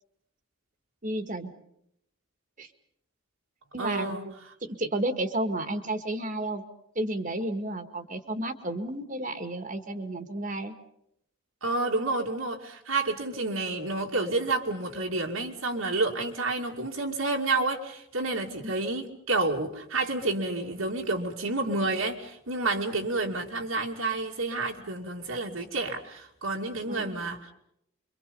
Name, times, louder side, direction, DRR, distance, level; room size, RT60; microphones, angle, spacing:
voice 1, 1.0-1.5 2.6-2.7 3.7-4.3 4.6-6.6 6.9-10.7 18.5-18.7 26.8-27.2, right 1 dB, 35° right, 8 dB, 1.8 m, -32 dB
voice 2, 3.8-4.2 11.6-27.5, right 2 dB, 80° right, 0 dB, 2.6 m, -29 dB
27.0 x 24.5 x 5.4 m, 0.75 s
head